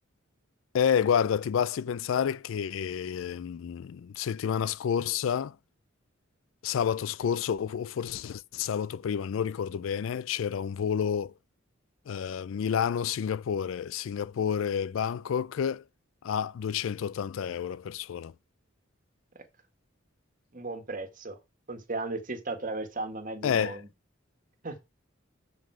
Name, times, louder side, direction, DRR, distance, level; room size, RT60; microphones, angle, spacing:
voice 1, 0.7-5.6 6.6-11.3 12.1-15.8 16.2-18.3 23.4-23.8, left 8 dB, 85° left, 0.4 m, -29 dB
voice 2, 20.5-21.4 21.7-23.9 24.6-24.8, right 2 dB, 45° right, 1.6 m, -35 dB
7.6 x 5.7 x 4.7 m
head